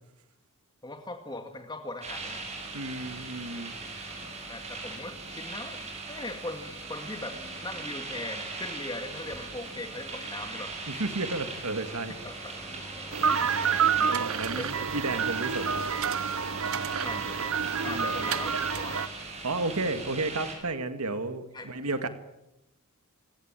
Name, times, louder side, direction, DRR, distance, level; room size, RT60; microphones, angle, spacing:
voice 1, 0.8-2.4 3.8-3.9 4.5-10.7 12.2-12.6 14.0-14.1 14.5-14.9 15.6-15.7 16.7-17.5 17.8-19.1 21.5-21.7, left 2 dB, 20° left, 5 dB, 2.0 m, -40 dB
sound 1, 2.0-20.5, right 3 dB, 30° right, 7.1 m, -39 dB
voice 2, 2.7-3.7 10.9-12.1 14.1-15.8 17.8-18.1 19.4-22.1, right 2 dB, 80° right, 9 dB, 2.0 m, -32 dB
sound 2, 11.0-17.1, equal, 5° left, 3.9 m, -51 dB
sound 3, 13.1-19.1, right 6 dB, 65° right, 0.8 m, -28 dB
29.0 x 17.5 x 9.0 m, 0.90 s
head